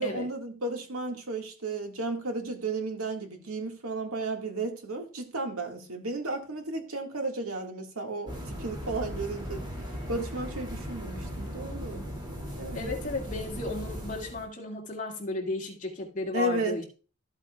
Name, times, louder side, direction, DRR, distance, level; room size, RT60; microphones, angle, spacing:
voice 1, 0.0-9.6 10.1-12.1 12.6-12.9 16.3-16.8, right 2 dB, 85° right, 2.0 m, -33 dB
sound 1, 8.3-14.4, equal, 20° right, 2.7 m, -38 dB
voice 2, 12.7-16.8, left 2 dB, 35° left, 2.2 m, -34 dB
13.5 x 8.1 x 2.4 m
head